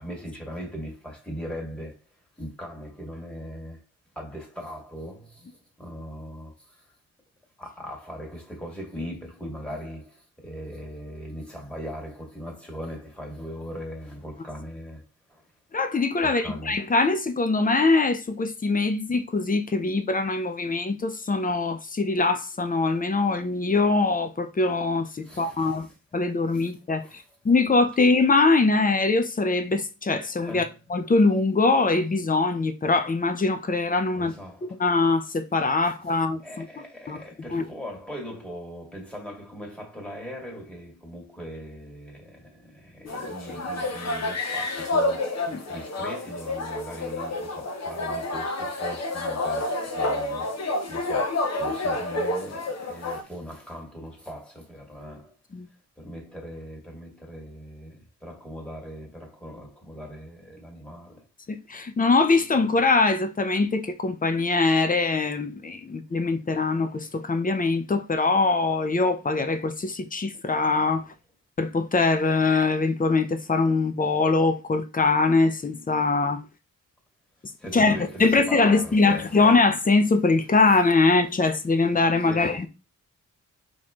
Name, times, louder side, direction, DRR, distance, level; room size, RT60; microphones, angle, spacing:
voice 1, 0.0-2.0 2.4-3.8 4.2-6.9 7.6-15.4 16.2-16.8 25.2-25.9 26.5-26.7 27.0-27.2 30.4-30.8 34.1-34.8 35.8-35.9 36.4-50.5 50.9-55.3 56.0-61.2 77.6-79.5 82.2-82.7, equal, 5° left, 2.0 m, -40 dB
voice 2, 15.7-25.9 26.1-30.6 30.9-34.3 34.6-36.7 37.1-37.2 37.5-37.6 45.5-45.6 55.5-55.7 61.5-71.0 71.6-76.4 77.7-82.7, left 3 dB, 25° left, 0.7 m, -22 dB
sound 1, 43.1-53.2, left 2 dB, 50° left, 1.0 m, -29 dB
4.3 x 3.1 x 3.7 m
cardioid pair, 95°, 33 cm